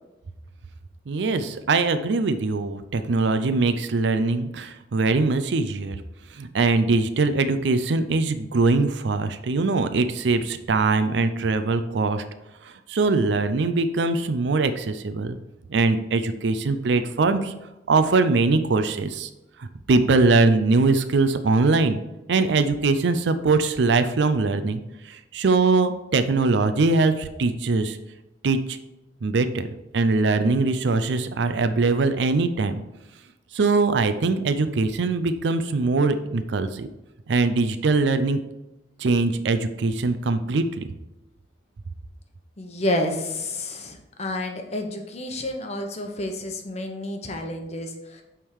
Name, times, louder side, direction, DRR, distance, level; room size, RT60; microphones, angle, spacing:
voice 1, 1.1-6.0 6.3-12.2 12.6-15.4 15.7-17.5 17.9-19.3 19.6-22.0 22.3-28.0 28.4-28.8 29.2-29.7 29.9-32.8 33.5-36.9 37.3-38.4 39.0-40.9, right 3 dB, 70° right, 10 dB, 0.5 m, -22 dB
voice 2, 42.6-48.2, left 1 dB, 35° left, 4 dB, 0.9 m, -30 dB
8.5 x 3.6 x 4.7 m, 0.96 s
head